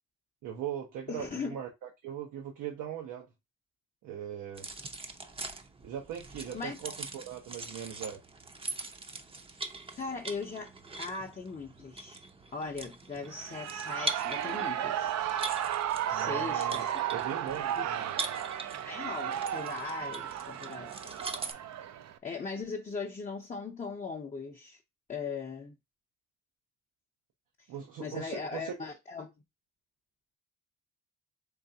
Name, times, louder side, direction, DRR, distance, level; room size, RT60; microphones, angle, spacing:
voice 1, 0.4-3.3 4.0-4.7 5.8-8.2 16.1-18.2 27.7-28.7, right 9 dB, 85° right, 0.9 m, -40 dB
voice 2, 1.1-1.6 6.5-6.8 10.0-10.7 11.0-12.2 12.5-15.1 16.1-16.9 17.8-17.9 18.9-21.3 22.2-24.8 25.1-25.7 28.0-29.3, left 4 dB, 25° left, 0.6 m, -39 dB
sound 1, 4.6-21.5, right 2 dB, 20° right, 0.6 m, -42 dB
Shout / Cheering, 13.2-22.2, right 10 dB, 60° right, 0.5 m, -34 dB
3.9 x 3.3 x 2.7 m
cardioid pair, 90°, 30 cm